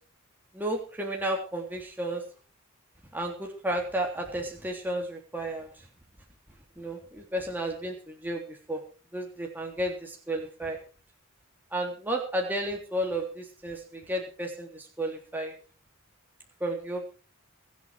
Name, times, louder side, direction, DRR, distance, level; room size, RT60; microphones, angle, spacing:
voice 1, 0.5-2.2 3.1-5.7 6.8-8.8 9.1-10.8 11.7-15.5 16.6-17.2, right 1 dB, 10° right, 0 dB, 3.4 m, -32 dB
22.5 x 8.5 x 4.7 m, 0.37 s
head